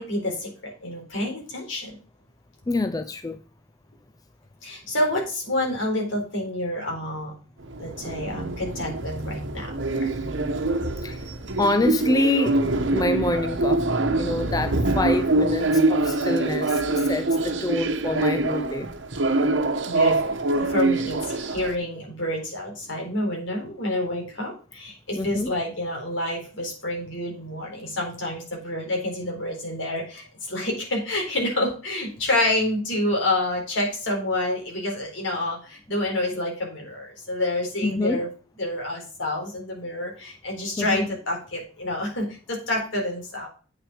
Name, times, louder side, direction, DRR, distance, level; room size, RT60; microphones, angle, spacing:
voice 1, 0.0-2.0 4.6-7.3 7.8-10.1 19.8-38.3 38.6-43.5, left 1 dB, 75° left, 4.0 m, -28 dB
voice 2, 2.7-3.4 11.0-11.3 11.6-12.6 12.9-18.9 25.2-25.5 37.8-38.2 40.8-41.1, left 2 dB, 20° left, 0.5 m, -26 dB
sound 1, 7.6-21.7, right 2 dB, 70° right, 1.1 m, -24 dB
8.5 x 6.1 x 5.0 m
head